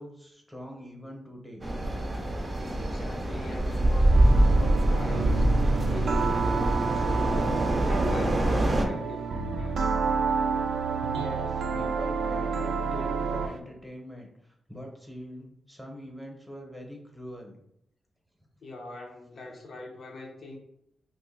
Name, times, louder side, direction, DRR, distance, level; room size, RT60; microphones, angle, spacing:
voice 1, 0.0-1.7 9.5-9.7 11.0-17.6, equal, ahead, 0 dB, 0.8 m, -43 dB
sound 1, 1.6-8.9, right 1 dB, 30° right, 0.5 m, -24 dB
voice 2, 2.8-5.5 5.8-7.5 7.8-9.8 18.6-20.6, left 2 dB, 60° left, 1 dB, 0.6 m, -42 dB
sound 2, 4.1-13.6, right 5 dB, 85° right, 0.3 m, -29 dB
2.5 x 2.2 x 3.9 m, 0.75 s
cardioid pair, 100°, 0 cm